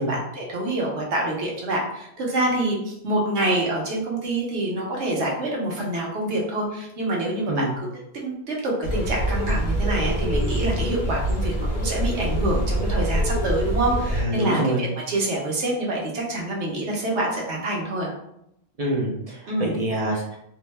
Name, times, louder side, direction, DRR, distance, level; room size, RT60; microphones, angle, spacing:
voice 1, 0.0-7.9 8.1-18.1 19.5-19.7, right 1 dB, 85° right, -2 dB, 1.1 m, -26 dB
sound 1, 8.8-14.2, equal, 50° left, 0.8 m, -25 dB
voice 2, 14.1-14.8 18.8-20.4, right 1 dB, 50° right, -2 dB, 0.4 m, -25 dB
2.6 x 2.1 x 3.2 m, 0.77 s
omnidirectional pair, 1.1 m